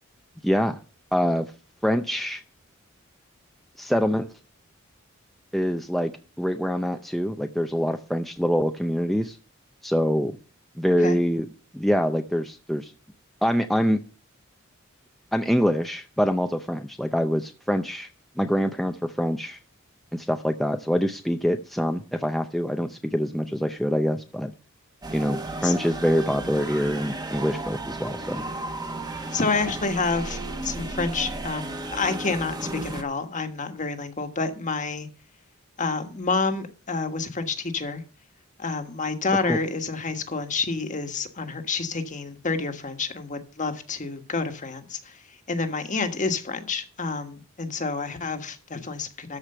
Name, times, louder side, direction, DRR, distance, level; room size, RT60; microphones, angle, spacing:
voice 1, 0.4-0.8 1.1-1.5 1.8-2.4 3.8-4.3 5.5-6.1 6.4-9.4 9.8-10.4 10.8-11.5 11.7-12.9 13.4-14.0 15.3-18.1 18.4-19.6 20.1-24.5 25.1-28.4 39.5-39.6, equal, ahead, 0.5 m, -25 dB
sound 1, 25.0-33.0, right 2 dB, 20° right, 1.2 m, -34 dB
voice 2, 29.3-35.1 35.8-38.0 38.6-45.0 45.5-49.4, left 4 dB, 40° left, 1.4 m, -28 dB
13.5 x 4.9 x 6.7 m
head